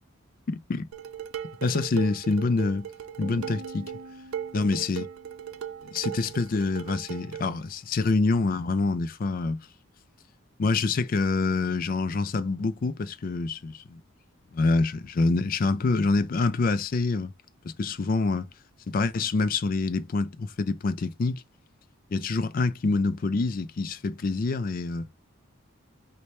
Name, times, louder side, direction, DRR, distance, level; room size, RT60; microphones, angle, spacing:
voice 1, 0.5-0.9 1.6-2.9 3.2-3.9 4.5-5.1 5.9-9.6 10.6-14.0 14.5-17.3 17.6-18.5 18.9-21.4 22.1-25.1, left 3 dB, 45° left, 0.3 m, -26 dB
Dishes pots and pans, 0.9-7.5, right 9 dB, 85° right, 0.4 m, -38 dB
Piano, 3.2-6.6, left 1 dB, 35° right, 0.7 m, -47 dB
3.2 x 2.1 x 4.2 m
head